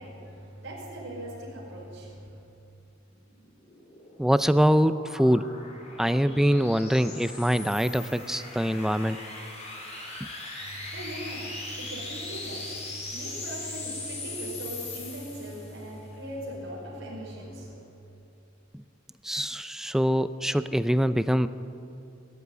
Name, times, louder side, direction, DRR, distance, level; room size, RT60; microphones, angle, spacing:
voice 1, 0.0-2.4 10.6-17.8, right 1 dB, 70° right, -5 dB, 5.5 m, -40 dB
sound 1, 3.3-15.9, left 2 dB, 35° left, 5.2 m, -40 dB
voice 2, 4.2-5.5 6.0-9.2 18.7-18.8 19.2-21.5, equal, ahead, 12 dB, 0.5 m, -24 dB
20.5 x 14.5 x 9.7 m, 2.9 s
head